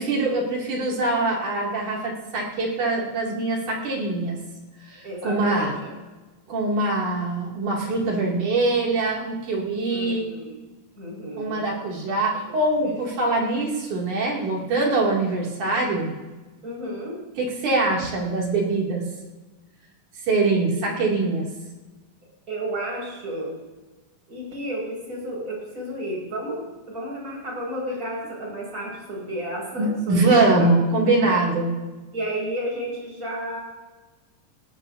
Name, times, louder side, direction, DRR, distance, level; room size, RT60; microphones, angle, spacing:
voice 1, 0.0-4.4 4.9-5.8 6.5-10.3 11.4-16.1 17.4-19.0 20.3-21.5 29.7-31.7, right 2 dB, 65° right, -3 dB, 4.1 m, -23 dB
voice 2, 5.0-5.9 9.9-10.5 11.0-11.6 12.8-13.0 16.6-17.2 22.5-23.6 24.3-30.7 31.2-31.3 32.1-33.6, right 1 dB, 25° right, -3 dB, 6.1 m, -32 dB
19.0 x 17.5 x 2.8 m, 1.2 s
omnidirectional pair, 3.9 m